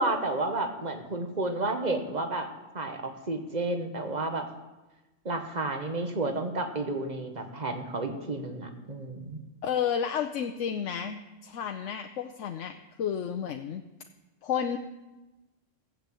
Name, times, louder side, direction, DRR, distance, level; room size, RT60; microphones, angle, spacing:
voice 1, 0.0-2.5 2.7-4.5 5.2-9.4, right 2 dB, 35° right, 6 dB, 1.5 m, -31 dB
voice 2, 9.6-13.8 14.4-14.8, left 8 dB, 90° left, 6 dB, 1.1 m, -31 dB
14.5 x 8.4 x 7.6 m, 1.1 s
omnidirectional pair, 1.2 m